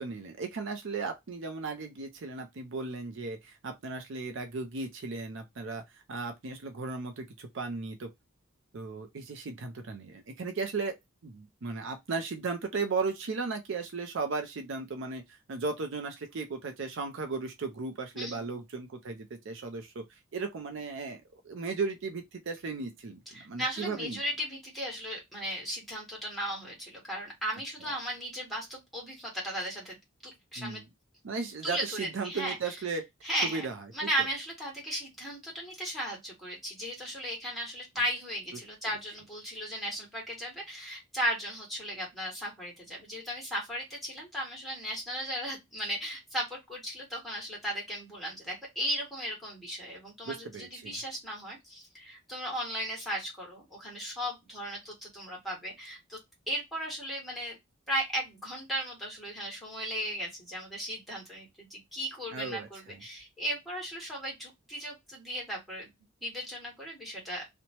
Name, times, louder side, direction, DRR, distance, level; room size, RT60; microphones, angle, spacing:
voice 1, 0.0-5.8 6.1-8.1 8.7-11.0 11.2-20.0 20.3-24.2 30.6-30.9 31.2-33.0 33.4-33.8 50.3-51.0 62.3-62.7, right 4 dB, 65° right, 0.5 m, -36 dB
voice 2, 18.1-18.5 23.3-30.0 30.2-30.8 31.6-32.8 33.2-56.2 56.5-57.6 57.9-65.9 66.2-67.4, equal, ahead, 1.4 m, -36 dB
2.9 x 2.1 x 2.8 m
head